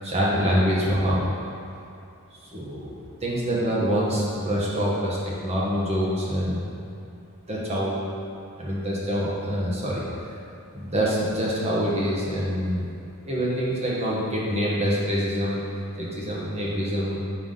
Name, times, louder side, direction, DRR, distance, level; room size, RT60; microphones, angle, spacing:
voice 1, 0.0-1.3 2.5-6.7 7.5-8.0 8.6-10.0 10.7-12.8 13.2-15.6 16.0-17.2, equal, 30° right, -6 dB, 1.3 m, -25 dB
7.1 x 5.5 x 3.9 m, 2.6 s
head